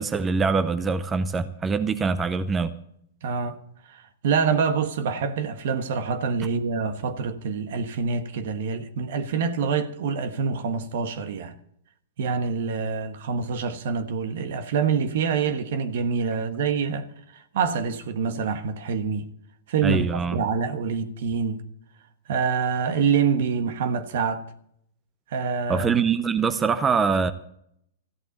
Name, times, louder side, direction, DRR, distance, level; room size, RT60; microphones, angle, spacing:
voice 1, 0.0-2.7 19.8-20.4 25.7-27.3, right 5 dB, 15° right, 0.7 m, -24 dB
voice 2, 3.2-3.6 3.9-11.5 12.2-17.1 17.3-19.2 19.7-21.6 22.3-24.4 25.3-25.9, right 6 dB, 65° right, 1.3 m, -26 dB
14.5 x 8.1 x 8.1 m
hypercardioid pair, 120°, 0 cm